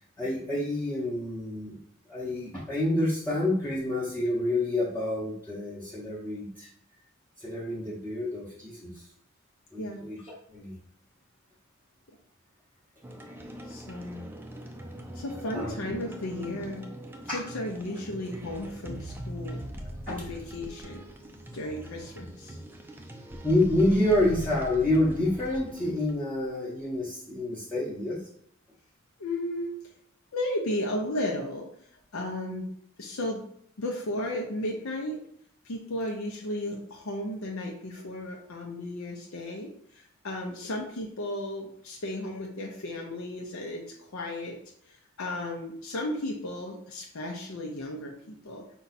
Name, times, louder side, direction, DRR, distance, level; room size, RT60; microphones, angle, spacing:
voice 1, 0.2-1.8 2.1-6.7 7.4-9.1 9.7-10.7 15.5-15.9 17.3-17.4 17.9-18.0 20.1-20.2 23.4-28.2, left 1 dB, 5° left, -9 dB, 0.8 m, -28 dB
sound 1, 13.0-26.1, right 1 dB, 10° right, 0.4 m, -42 dB
voice 2, 13.7-14.3 15.1-16.9 17.3-19.6 20.1-21.0 21.5-22.6 29.2-29.7 30.3-31.7 32.1-32.7 33.0-33.5 33.8-35.2 35.6-43.8 44.1-44.6 44.9-48.7, left 1 dB, 80° left, 0 dB, 0.6 m, -34 dB
5.2 x 2.3 x 4.1 m, 0.65 s
head